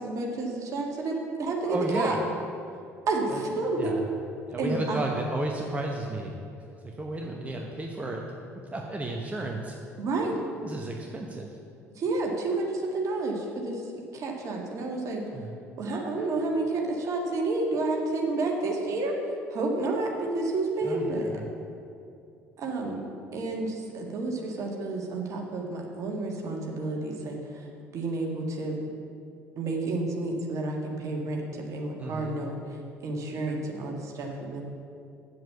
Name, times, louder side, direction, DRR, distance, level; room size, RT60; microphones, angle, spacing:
voice 1, 0.0-2.1 3.1-3.9 4.6-5.0 10.0-10.4 11.9-13.9 14.1-15.2 15.8-21.4 22.6-23.0 23.3-28.8 29.6-34.6, right 2 dB, 45° right, 0 dB, 1.7 m, -30 dB
voice 2, 1.6-2.2 3.3-3.4 3.8-4.0 4.5-6.4 6.8-8.2 8.7-9.7 10.6-11.5 15.3-15.5 20.8-21.5 32.0-32.4, right 2 dB, 15° right, 1 dB, 1.0 m, -33 dB
8.4 x 7.7 x 7.0 m, 2.5 s
figure-of-eight pair, 55°, 8 cm